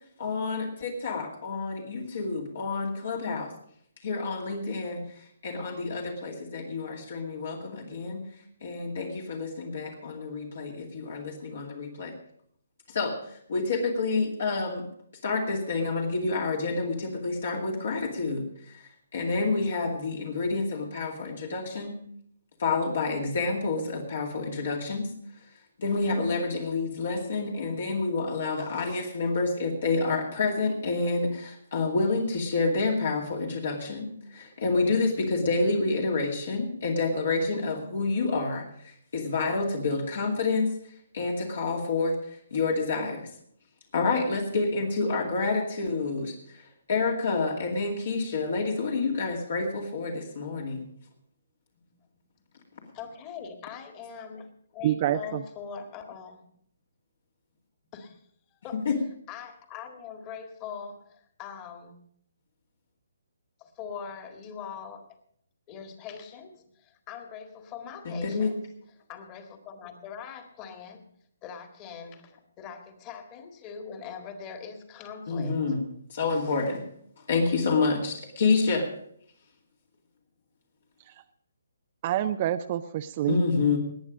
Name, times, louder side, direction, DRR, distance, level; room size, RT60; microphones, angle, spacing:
voice 1, 0.2-3.5 4.0-8.2 8.6-12.1 12.9-14.9 15.2-21.9 22.6-25.1 25.8-40.8 41.1-43.3 43.9-50.9 58.7-59.0 68.0-68.5 75.3-75.8 76.1-76.8 77.3-78.9 83.3-83.8, left 3 dB, 60° left, 0 dB, 2.4 m, -28 dB
voice 2, 52.9-54.5 54.7-56.4 57.9-58.2 58.6-58.8 59.3-62.0 63.6-65.1 65.7-68.5 69.1-71.0 71.4-75.6, left 6 dB, 25° left, 6 dB, 1.8 m, -42 dB
voice 3, 54.8-55.4 81.1-81.2 82.0-83.4, right 12 dB, 35° right, 10 dB, 0.5 m, -27 dB
19.5 x 8.9 x 5.2 m, 0.68 s
figure-of-eight pair, 140°, 0 cm